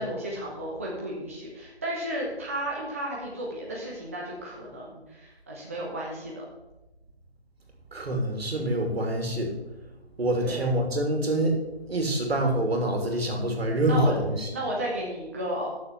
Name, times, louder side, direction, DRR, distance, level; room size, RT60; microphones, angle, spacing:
voice 1, 0.0-6.4 10.4-10.7 13.9-14.1 14.5-15.7, right 1 dB, 15° right, -4 dB, 0.7 m, -33 dB
voice 2, 7.9-9.5 10.2-11.6 11.9-14.5, right 1 dB, 65° right, 2 dB, 2.9 m, -26 dB
11.0 x 6.9 x 4.6 m, 1.1 s
figure-of-eight pair, 165°, 33 cm